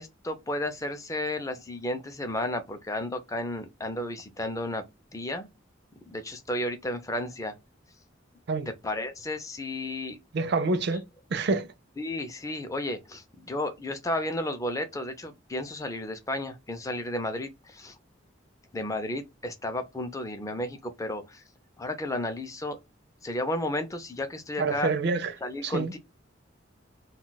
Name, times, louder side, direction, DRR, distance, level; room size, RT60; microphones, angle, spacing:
voice 1, 0.0-4.8 5.1-5.5 6.1-7.5 8.7-10.2 12.0-18.0 18.7-21.4 21.8-22.8 23.2-24.9 25.4-26.0, left 1 dB, 15° left, 0.5 m, -33 dB
voice 2, 10.3-11.0 11.3-11.7 24.6-25.3 25.6-25.9, right 3 dB, 60° right, 0.5 m, -27 dB
2.3 x 2.2 x 3.9 m
head